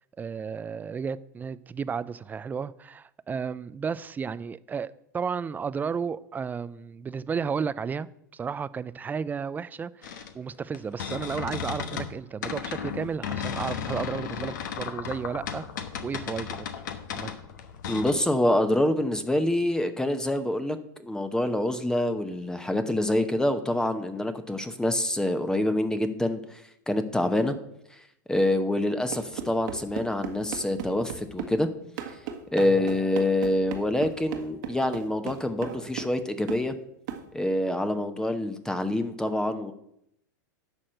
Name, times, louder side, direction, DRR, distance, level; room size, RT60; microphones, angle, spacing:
voice 1, 0.2-15.6 16.0-16.7 17.1-17.3 32.6-32.8, right 6 dB, 15° right, 0.4 m, -33 dB
sound 1, 10.0-12.1 12.4-18.1, left 8 dB, 70° left, 1.1 m, -34 dB
voice 2, 17.9-27.6 28.3-31.7 32.5-36.7 37.3-39.7, left 1 dB, 5° left, 0.9 m, -26 dB
sound 2, 29.1-31.6 32.0-36.2 36.5-36.7 37.1-37.3, right 8 dB, 65° right, 1.6 m, -36 dB
11.5 x 4.2 x 7.8 m
hypercardioid pair, 100°, 10 cm